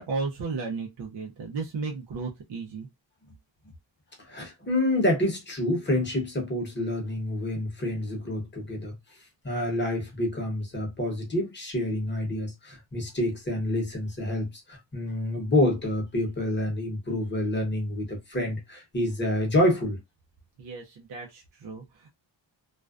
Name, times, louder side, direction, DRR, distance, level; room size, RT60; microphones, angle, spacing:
voice 1, 0.0-2.9 20.6-22.1, right 4 dB, 60° right, 0.6 m, -34 dB
voice 2, 4.3-8.9 9.4-20.0, left 1 dB, 25° left, 0.9 m, -28 dB
2.4 x 2.2 x 2.3 m
wide cardioid pair, 145°, 47 cm